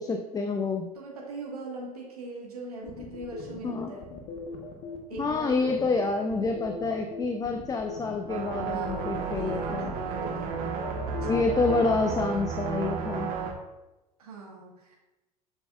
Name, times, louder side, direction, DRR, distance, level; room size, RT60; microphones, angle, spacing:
voice 1, 0.0-0.9 3.6-3.9 5.2-9.9 11.2-13.3, left 3 dB, 20° left, 5 dB, 0.6 m, -28 dB
voice 2, 0.9-4.1 5.1-5.8 8.7-10.5 11.1-11.4 14.2-15.0, right 3 dB, 80° right, -2 dB, 1.4 m, -41 dB
sound 1, 2.8-11.8, left 4 dB, 55° left, 1.2 m, -39 dB
sound 2, 8.3-13.5, right 5 dB, 50° right, 1.3 m, -32 dB
7.7 x 6.1 x 2.4 m, 1.0 s
hypercardioid pair, 75°, 19 cm